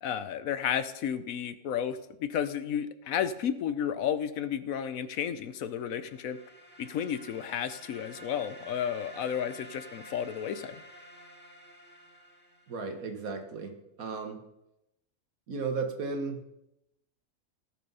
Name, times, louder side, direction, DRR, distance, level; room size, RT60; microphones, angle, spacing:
voice 1, 0.0-6.4 6.8-10.8, left 8 dB, 70° left, 13 dB, 1.1 m, -32 dB
sound 1, 5.4-13.1, right 1 dB, 5° left, 1.8 m, -50 dB
voice 2, 12.7-14.4 15.5-16.5, right 4 dB, 70° right, 6 dB, 1.7 m, -35 dB
17.5 x 5.9 x 5.5 m, 0.88 s
omnidirectional pair, 1.5 m